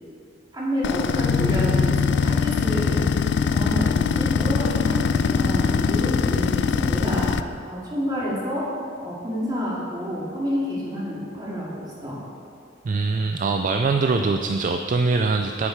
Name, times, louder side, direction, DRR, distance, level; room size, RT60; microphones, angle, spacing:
voice 1, 0.5-3.0 3.5-8.7 9.0-12.2, equal, 20° right, -6 dB, 2.3 m, -29 dB
sound 1, 0.8-7.4, left 6 dB, 65° left, 0.3 m, -22 dB
voice 2, 12.8-15.7, right 4 dB, 45° right, 5 dB, 0.3 m, -23 dB
8.7 x 8.0 x 4.6 m, 2.4 s
head